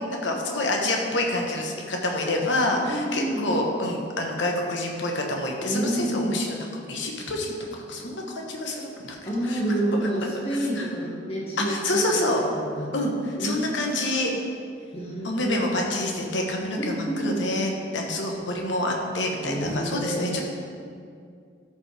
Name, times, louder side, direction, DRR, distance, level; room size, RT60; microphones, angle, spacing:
voice 1, 0.0-6.6 6.9-9.2 9.5-9.6 10.5-10.8 11.7-12.4 12.9-13.1 13.4-14.3 15.2-20.4, left 1 dB, 70° left, 0 dB, 1.2 m, -27 dB
voice 2, 2.8-3.6 5.6-6.4 9.2-12.9 13.3-14.1 14.9-15.6 16.7-17.5 19.4-20.4, right 1 dB, 30° left, -5 dB, 1.8 m, -29 dB
13.5 x 5.3 x 3.5 m, 2.3 s
head